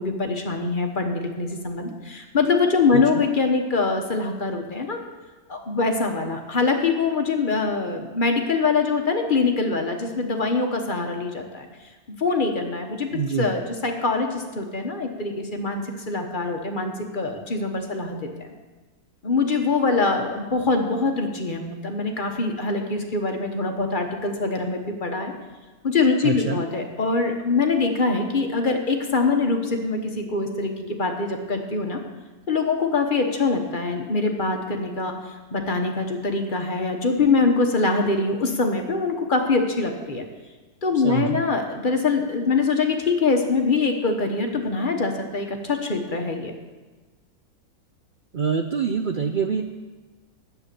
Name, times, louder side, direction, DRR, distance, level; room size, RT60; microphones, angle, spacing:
voice 1, 0.0-5.0 5.5-11.7 12.2-13.1 13.4-18.5 19.2-25.3 25.8-32.0 32.5-35.2 35.5-40.2 40.8-46.5, left 4 dB, 35° left, 4 dB, 1.1 m, -24 dB
voice 2, 13.1-13.5 26.2-26.6 41.0-41.4 48.3-49.6, right 6 dB, 80° right, 6 dB, 0.4 m, -25 dB
10.5 x 8.1 x 6.7 m, 1.3 s
omnidirectional pair, 1.6 m